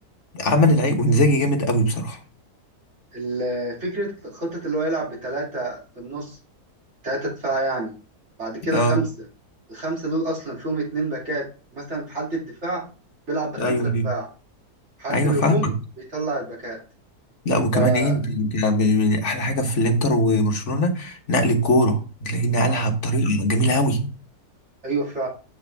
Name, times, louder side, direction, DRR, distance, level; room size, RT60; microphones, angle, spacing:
voice 1, 0.3-2.2 8.7-9.0 13.6-14.1 15.1-15.7 17.4-24.0, equal, 50° left, 1.5 m, -21 dB
voice 2, 3.1-6.4 7.0-7.9 8.4-9.1 9.7-11.5 11.7-12.8 13.3-13.8 14.0-14.3 15.0-15.7 16.1-16.8 17.7-18.1 22.7-22.9 24.8-25.3, right 2 dB, 45° right, 3.3 m, -27 dB
7.7 x 6.7 x 3.5 m
omnidirectional pair, 1.7 m